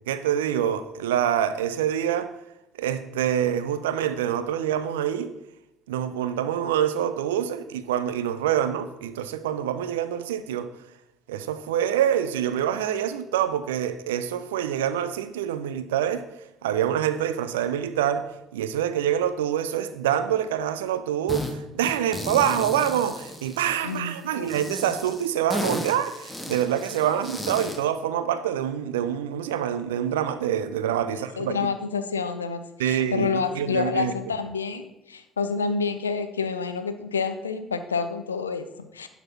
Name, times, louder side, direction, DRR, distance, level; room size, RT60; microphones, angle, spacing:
voice 1, 0.1-2.3 2.8-5.3 5.9-10.7 11.3-16.3 16.6-18.3 18.5-31.5 32.8-34.1, right 10 dB, 75° right, 0.5 m, -26 dB
sound 1, 21.3-21.5 21.8-24.0 24.5-27.8, left 1 dB, 5° left, 1.7 m, -34 dB
voice 2, 23.8-24.5 31.1-39.1, left 5 dB, 85° left, 0.5 m, -29 dB
11.0 x 4.1 x 5.7 m
figure-of-eight pair, 50°, 0 cm